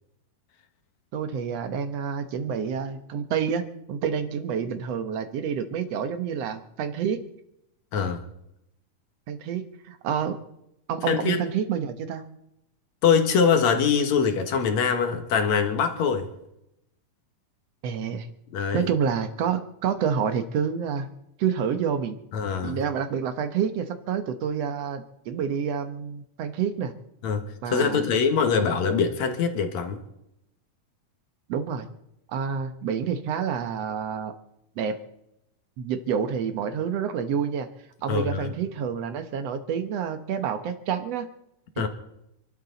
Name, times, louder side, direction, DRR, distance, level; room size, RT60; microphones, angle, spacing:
voice 1, 1.1-7.2 9.3-10.4 10.9-12.2 17.8-18.3 18.7-21.1 21.4-22.2 22.6-26.9 27.6-28.2 31.5-31.9 32.3-34.3 34.8-35.0 35.8-37.7 38.0-41.3 41.8-41.9, right 7 dB, 60° right, 1.9 m, -28 dB
voice 2, 7.9-8.3 11.1-11.4 13.0-16.3 18.5-18.9 22.3-22.8 27.2-30.0 38.1-38.5 41.8-41.9, left 6 dB, 60° left, 2.6 m, -23 dB
28.5 x 12.0 x 4.0 m
omnidirectional pair, 3.9 m